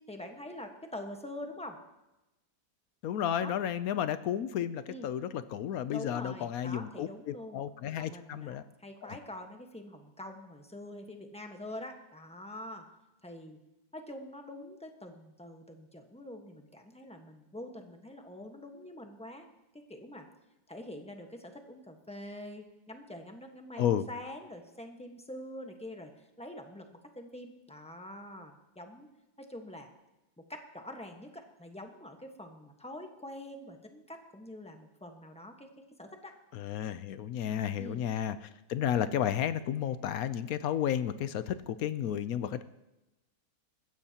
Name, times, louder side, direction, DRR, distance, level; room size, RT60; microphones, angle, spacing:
voice 1, 0.1-1.8 3.4-3.6 4.9-5.1 5.9-7.6 8.0-12.8 13.2-13.6 13.9-19.5 19.7-20.3 20.7-29.1 29.4-29.9 30.4-36.3 37.8-38.0, left 1 dB, 5° left, 3 dB, 1.0 m, -45 dB
voice 2, 3.0-8.6 9.0-9.2 23.8-24.0 36.5-42.6, left 10 dB, 70° left, 13 dB, 0.9 m, -32 dB
21.0 x 15.5 x 2.9 m, 0.99 s
omnidirectional pair, 1.8 m